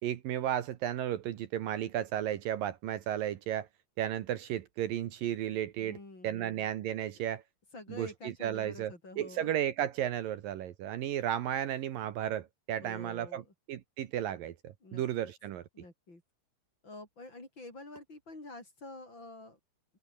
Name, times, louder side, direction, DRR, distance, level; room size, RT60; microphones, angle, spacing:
voice 1, 0.0-3.7 4.0-6.0 6.2-7.4 7.9-13.4 13.7-15.6, right 11 dB, 70° right, 2.8 m, -34 dB
voice 2, 5.8-7.0 7.7-9.5 12.8-13.5 14.8-15.3 15.7-16.2 16.8-19.6, left 2 dB, 30° left, 6.8 m, -48 dB
omnidirectional pair, 4.4 m